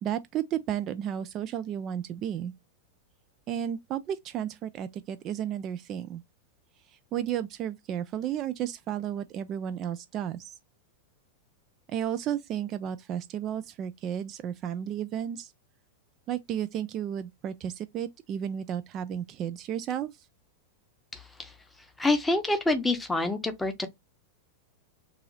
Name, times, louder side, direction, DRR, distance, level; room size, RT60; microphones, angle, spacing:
voice 1, 0.0-2.5 3.5-6.2 6.9-10.6 11.9-15.5 16.3-20.3, right 10 dB, 35° right, 0.3 m, -33 dB
voice 2, 21.1-21.5 22.0-23.9, left 2 dB, 5° left, 0.7 m, -27 dB
2.7 x 2.7 x 3.8 m
figure-of-eight pair, 90°, 0 cm